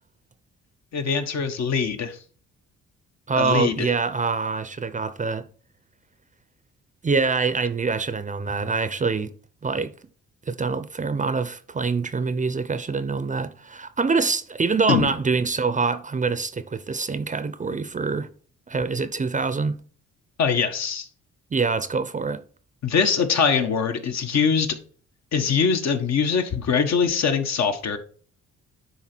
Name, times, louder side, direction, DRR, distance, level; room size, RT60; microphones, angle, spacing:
voice 1, 0.9-2.2 3.4-3.9 14.9-15.1 20.4-21.1 22.8-24.8 25.3-28.0, left 6 dB, 60° left, 1.3 m, -22 dB
voice 2, 3.3-5.4 7.0-9.3 9.6-9.9 10.5-18.3 18.7-19.8 21.5-22.4, right 4 dB, 25° right, 0.6 m, -25 dB
10.0 x 4.0 x 4.5 m
cardioid pair, 90°, 30 cm